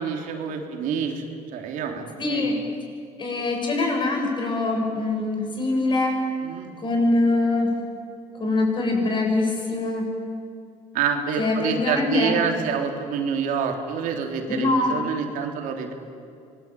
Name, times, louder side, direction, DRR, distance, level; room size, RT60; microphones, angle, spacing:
voice 1, 0.0-2.4 6.4-6.7 10.9-15.9, right 6 dB, 80° right, 3 dB, 3.5 m, -27 dB
voice 2, 2.2-2.6 3.2-6.2 6.8-7.7 8.3-10.0 11.4-12.4 14.4-14.9, left 2 dB, 35° left, 1 dB, 7.9 m, -23 dB
25.5 x 21.5 x 9.2 m, 2.4 s
cardioid pair, 120°, 14 cm